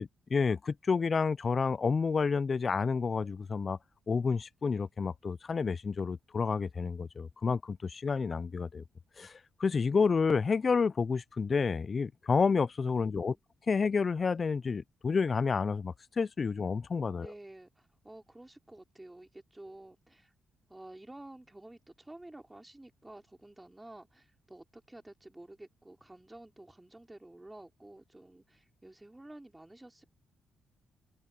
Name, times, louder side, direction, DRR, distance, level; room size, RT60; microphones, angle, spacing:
voice 1, 0.0-3.8 4.1-8.8 9.2-13.4 13.7-17.3, left 5 dB, 40° left, 0.4 m, -30 dB
voice 2, 13.0-13.4 17.2-20.3 20.7-30.0, right 1 dB, 10° right, 3.9 m, -51 dB
cardioid pair, 85°, 0 cm